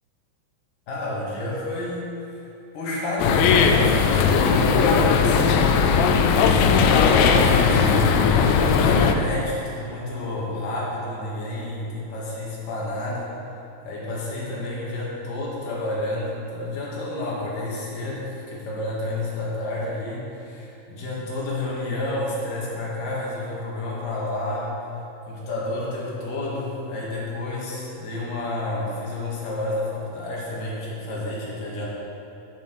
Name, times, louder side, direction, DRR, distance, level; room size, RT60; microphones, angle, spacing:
voice 1, 0.9-2.4 2.7-6.2 6.5-13.3 13.8-24.7 25.2-31.9, left 2 dB, 55° left, -5 dB, 3.1 m, -30 dB
sound 1, 3.2-9.1, left 6 dB, 80° left, 2.7 m, -18 dB
11.0 x 7.2 x 6.1 m, 2.7 s
omnidirectional pair, 5.4 m